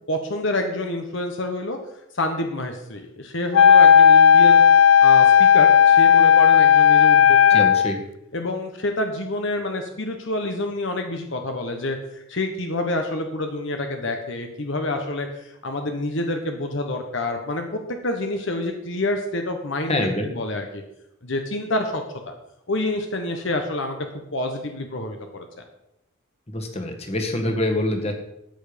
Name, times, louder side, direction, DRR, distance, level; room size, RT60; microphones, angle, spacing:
voice 1, 0.0-1.8 2.1-4.6 5.0-7.6 8.3-20.0 20.3-20.8 21.2-22.3 22.7-24.0 24.3-25.4, left 1 dB, 60° left, 4 dB, 1.2 m, -28 dB
Wind instrument woodwind instrument, 3.5-8.0, left 8 dB, 75° left, 0.5 m, -13 dB
voice 2, 7.5-8.0 19.9-20.3 26.5-28.1, left 1 dB, 30° left, 4 dB, 1.7 m, -25 dB
13.0 x 9.1 x 5.2 m, 0.85 s
head